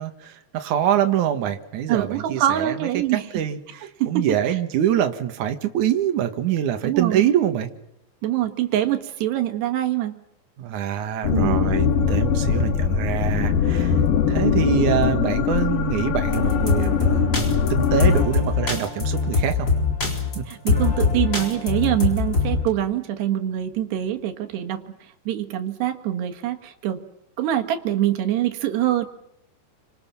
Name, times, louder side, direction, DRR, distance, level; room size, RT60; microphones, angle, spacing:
voice 1, 0.0-3.0 3.3-7.7 10.6-13.9 14.3-19.7 20.3-20.5, right 10 dB, 55° right, 6 dB, 2.6 m, -25 dB
voice 2, 1.9-3.4 4.0-4.6 6.8-7.3 8.2-10.2 11.3-11.7 20.5-25.0 25.3-27.0 27.4-29.1, right 12 dB, 75° right, 6 dB, 3.6 m, -24 dB
sound 1, 11.2-18.2, left 7 dB, 60° left, 2.7 m, -21 dB
sound 2, 16.3-22.6, left 4 dB, 25° left, 4.3 m, -22 dB
30.0 x 25.5 x 6.0 m, 0.78 s
omnidirectional pair, 5.0 m